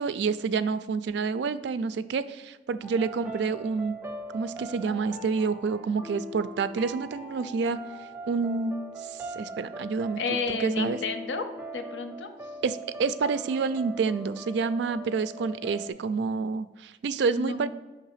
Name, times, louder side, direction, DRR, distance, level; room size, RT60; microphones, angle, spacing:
voice 1, 0.0-3.9 4.3-7.8 8.3-8.7 9.0-10.2 10.5-11.0 12.6-17.7, right 5 dB, 65° right, 14 dB, 0.3 m, -28 dB
sound 1, 2.8-15.9, right 1 dB, 10° right, 0.5 m, -41 dB
voice 2, 10.2-11.5 11.7-12.3 17.3-17.7, left 4 dB, 85° left, 8 dB, 0.6 m, -31 dB
5.5 x 3.3 x 5.7 m, 1.1 s
head